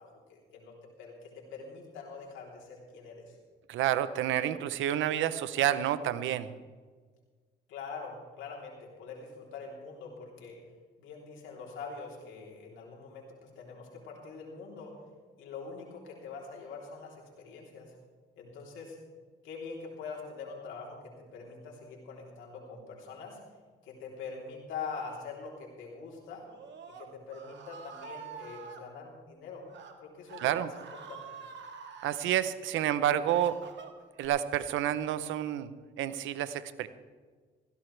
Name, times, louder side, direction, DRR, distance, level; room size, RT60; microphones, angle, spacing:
voice 1, 0.0-3.4 7.7-10.6 11.0-15.0 15.4-17.9 18.4-19.0 19.4-23.4 23.8-26.5 26.9-29.7 30.0-31.3, left 5 dB, 90° left, -2 dB, 3.4 m, -44 dB
voice 2, 3.7-6.5 30.4-30.7 32.0-33.6 34.2-35.7 36.0-36.9, right 11 dB, 85° right, 14 dB, 0.7 m, -29 dB
Screaming, 26.4-28.8 29.6-29.9 30.3-32.3 32.9-34.3, right 6 dB, 70° right, 1.7 m, -47 dB
17.0 x 15.5 x 3.3 m, 1.5 s
supercardioid pair, 65°, 20 cm